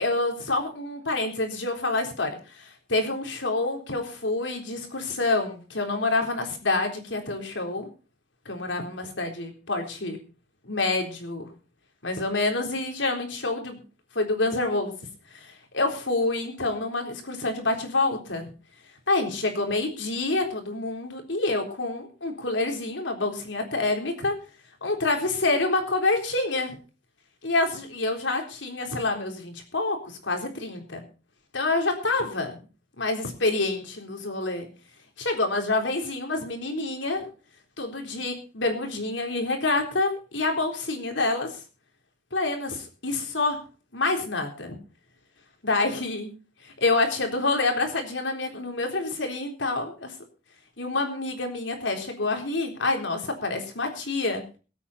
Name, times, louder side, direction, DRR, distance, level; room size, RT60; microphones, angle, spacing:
voice 1, 0.0-7.9 8.5-10.2 10.6-11.5 12.0-13.8 14.1-14.9 15.3-18.5 19.1-24.3 24.8-26.8 27.4-31.0 31.5-32.6 33.0-34.7 35.2-37.3 37.8-41.6 42.3-43.6 43.9-44.8 45.6-46.3 46.6-50.1 50.8-54.4, left 2 dB, 90° left, 3 dB, 3.9 m, -27 dB
22.5 x 8.7 x 4.2 m, 0.35 s
head